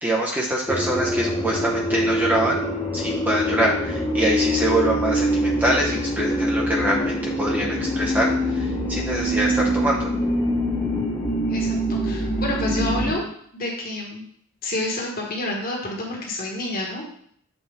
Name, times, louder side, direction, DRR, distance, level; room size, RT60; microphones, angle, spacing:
voice 1, 0.0-2.6 2.9-10.1, right 1 dB, 10° right, -3 dB, 0.7 m, -24 dB
sound 1, 0.7-13.1, equal, 20° left, 1.1 m, -24 dB
voice 2, 11.5-13.2 13.5-14.2 14.6-17.2, left 1 dB, 45° left, -1 dB, 1.5 m, -29 dB
7.7 x 4.2 x 3.4 m, 0.64 s
head